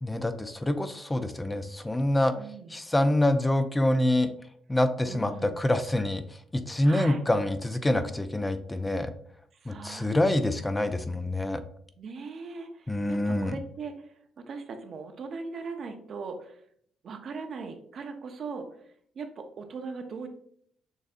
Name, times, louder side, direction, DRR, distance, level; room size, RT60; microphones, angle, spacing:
voice 1, 0.0-2.3 2.7-4.3 4.7-6.2 6.5-9.1 9.7-11.6 12.9-13.5, left 1 dB, 15° left, 9 dB, 0.4 m, -26 dB
voice 2, 2.3-2.8 5.1-5.6 6.8-7.3 9.5-10.7 12.0-16.6 17.0-20.3, right 4 dB, 55° right, 6 dB, 0.6 m, -40 dB
6.5 x 2.6 x 2.4 m, 0.63 s
cardioid pair, 90°, 0 cm